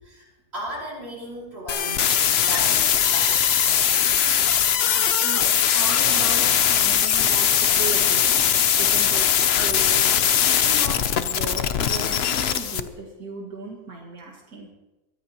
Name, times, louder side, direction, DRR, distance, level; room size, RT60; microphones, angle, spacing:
voice 1, 0.0-2.1 2.4-3.8, equal, 40° right, -4 dB, 5.2 m, -36 dB
sound 1, 1.7-12.8, left 9 dB, 55° left, 0.8 m, -20 dB
voice 2, 5.2-8.4 8.8-10.0 10.5-14.7, right 3 dB, 90° right, -2 dB, 2.5 m, -36 dB
22.5 x 14.5 x 3.0 m, 1.1 s
omnidirectional pair, 1.6 m